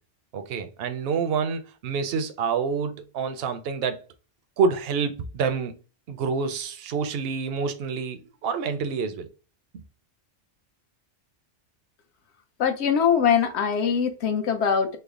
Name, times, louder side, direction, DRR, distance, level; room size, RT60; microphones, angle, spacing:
voice 1, 0.3-4.0 4.6-5.7 6.1-9.3 9.7-9.8, right 5 dB, 65° right, 0.7 m, -27 dB
voice 2, 12.6-15.0, left 7 dB, 70° left, 0.9 m, -22 dB
3.3 x 2.0 x 3.6 m
omnidirectional pair, 1.2 m